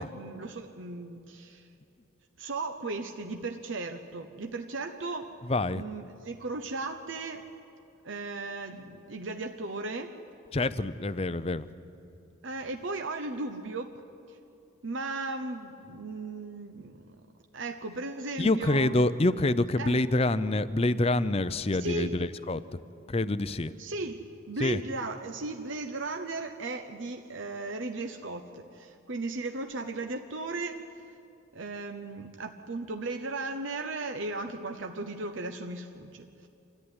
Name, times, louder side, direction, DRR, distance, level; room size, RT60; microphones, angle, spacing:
voice 1, 0.0-1.7 2.4-5.4 5.7-7.5 8.0-10.2 12.4-13.9 14.3-14.4 14.8-17.1 17.5-19.3 19.8-20.0 21.7-22.3 23.8-30.9 31.5-36.5, right 3 dB, 65° right, 6 dB, 0.9 m, -36 dB
voice 2, 5.5-5.8 10.5-11.7 18.4-22.6 23.1-23.7 24.6-24.8, left 2 dB, 30° left, 14 dB, 0.5 m, -26 dB
26.0 x 14.5 x 9.8 m, 2.8 s
head